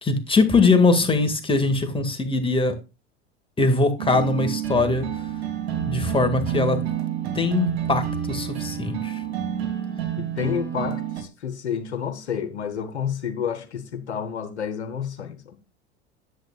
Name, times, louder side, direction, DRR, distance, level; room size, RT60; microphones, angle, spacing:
voice 1, 0.0-2.8 3.6-5.1 5.9-6.8 7.3-9.2, left 3 dB, 15° left, 1.9 m, -21 dB
sound 1, 4.0-11.2, right 9 dB, 70° right, 2.0 m, -29 dB
voice 2, 10.2-15.6, left 8 dB, 85° left, 1.1 m, -30 dB
10.5 x 8.1 x 2.4 m
hypercardioid pair, 75°, 33 cm